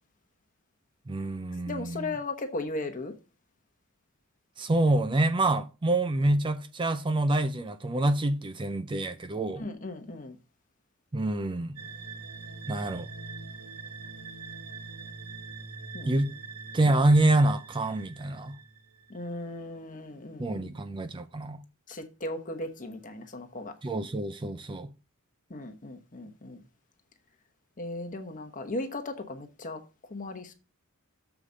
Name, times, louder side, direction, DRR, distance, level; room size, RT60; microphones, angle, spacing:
voice 1, 1.1-2.2 4.6-9.6 11.1-11.8 12.7-13.1 16.1-16.3 16.7-18.6 20.4-21.6 23.8-24.9, right 2 dB, 20° right, 0.4 m, -26 dB
voice 2, 1.7-3.1 9.6-10.4 15.9-16.1 19.1-20.7 21.9-23.7 25.5-26.6 27.8-29.8 30.1-30.5, left 2 dB, 35° left, 1.1 m, -37 dB
sound 1, 11.8-19.3, right 4 dB, 90° right, 1.1 m, -43 dB
7.1 x 4.9 x 5.1 m
head